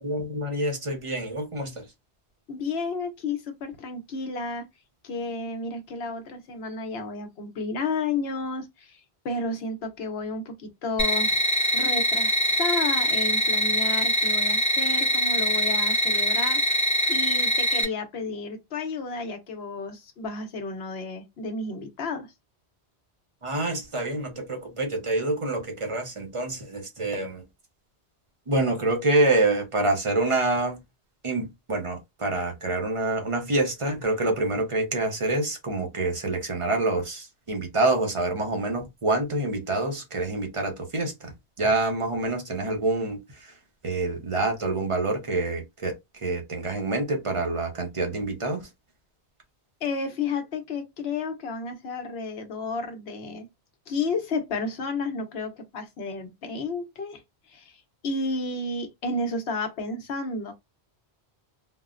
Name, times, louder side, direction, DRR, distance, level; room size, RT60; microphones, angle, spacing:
voice 1, 0.0-1.8 23.4-27.4 28.5-30.8 31.2-41.3 41.6-43.2 43.8-45.9 46.2-48.6, right 2 dB, 35° right, 0.6 m, -26 dB
voice 2, 2.5-4.7 5.0-11.4 11.7-16.6 17.1-22.3 49.8-53.5 53.9-57.2 57.5-60.5, left 3 dB, 70° left, 1.0 m, -32 dB
sound 1, 11.0-17.8, equal, 20° left, 0.5 m, -23 dB
3.7 x 2.0 x 2.4 m
omnidirectional pair, 1.1 m